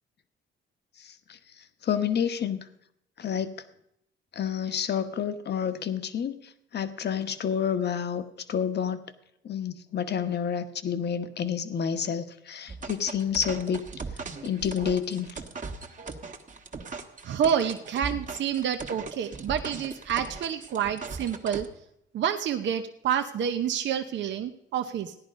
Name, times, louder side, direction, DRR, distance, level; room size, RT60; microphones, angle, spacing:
voice 1, 1.0-1.4 1.8-2.6 3.2-3.5 4.3-6.3 6.7-8.2 8.5-9.0 9.4-13.8 14.4-15.3, left 8 dB, 55° left, 10 dB, 1.2 m, -29 dB
sound 1, 12.7-21.7, right 4 dB, 40° right, 1.5 m, -39 dB
voice 2, 17.2-21.7 22.1-25.2, right 8 dB, 65° right, 7 dB, 0.8 m, -28 dB
16.0 x 10.5 x 5.2 m, 0.78 s
cardioid pair, 90°, 20 cm